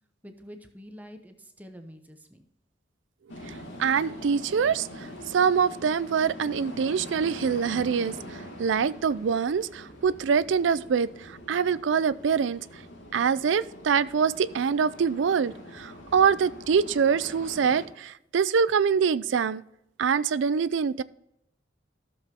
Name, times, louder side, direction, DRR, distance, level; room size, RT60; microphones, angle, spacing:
voice 1, 0.2-2.4, equal, 10° right, 6 dB, 0.8 m, -46 dB
sound 1, 3.3-17.9, left 1 dB, 80° left, 2.4 m, -43 dB
voice 2, 3.8-4.9 5.3-12.6 13.1-19.6 20.0-21.0, right 6 dB, 75° right, 18 dB, 0.4 m, -25 dB
13.5 x 7.2 x 2.8 m, 0.79 s
head